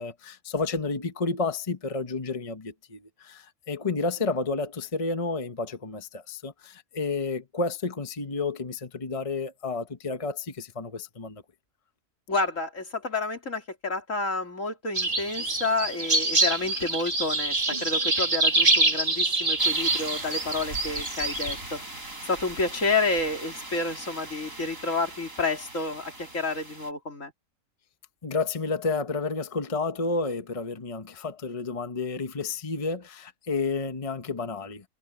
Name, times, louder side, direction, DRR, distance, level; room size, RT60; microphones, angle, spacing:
voice 1, 0.0-11.4 28.2-34.9, left 3 dB, 25° left, 1.2 m, -31 dB
voice 2, 12.3-21.8 22.2-27.3, left 3 dB, 70° left, 3.6 m, -29 dB
sound 1, 14.9-21.6, right 2 dB, 40° right, 2.7 m, -25 dB
sound 2, 19.6-26.9, right 2 dB, 80° right, 7.2 m, -40 dB
omnidirectional pair, 1.4 m